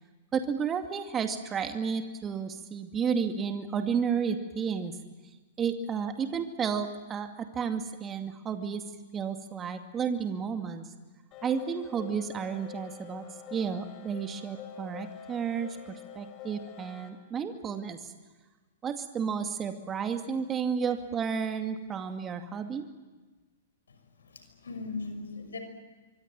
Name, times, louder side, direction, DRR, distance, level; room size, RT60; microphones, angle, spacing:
voice 1, 0.3-4.9 5.6-8.8 9.1-10.9 11.4-13.3 13.5-18.1 18.8-22.9, right 6 dB, 20° right, 6 dB, 2.3 m, -32 dB
sound 1, 11.3-17.1, left 7 dB, 35° left, 6.0 m, -46 dB
voice 2, 24.2-25.6, left 3 dB, 75° left, 8 dB, 6.1 m, -38 dB
25.5 x 24.0 x 9.0 m, 1.3 s
figure-of-eight pair, 110°, 0 cm